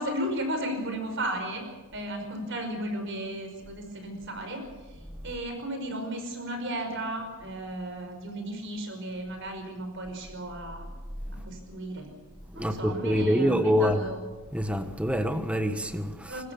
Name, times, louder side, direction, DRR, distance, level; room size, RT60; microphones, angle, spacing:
voice 1, 0.0-1.7 1.9-10.9 11.3-12.1 12.5-14.2 16.3-16.5, right 1 dB, 55° right, 5.3 m, -34 dB
voice 2, 12.5-14.0 14.5-16.4, equal, 5° right, 1.4 m, -26 dB
23.0 x 19.5 x 7.1 m
head